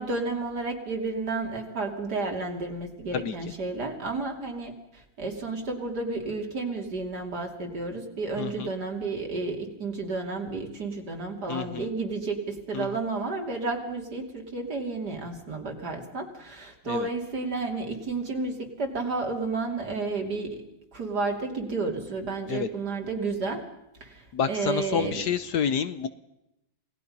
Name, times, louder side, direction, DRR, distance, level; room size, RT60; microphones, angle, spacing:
voice 1, 0.0-20.6 20.9-23.6 24.0-25.2, right 3 dB, 55° right, 2 dB, 3.5 m, -31 dB
voice 2, 8.4-8.7 11.5-11.9 12.7-12.9 16.9-17.1 22.5-22.7 24.3-26.1, left 7 dB, 65° left, 12 dB, 1.4 m, -29 dB
28.0 x 18.5 x 5.5 m, 0.87 s
omnidirectional pair, 2.1 m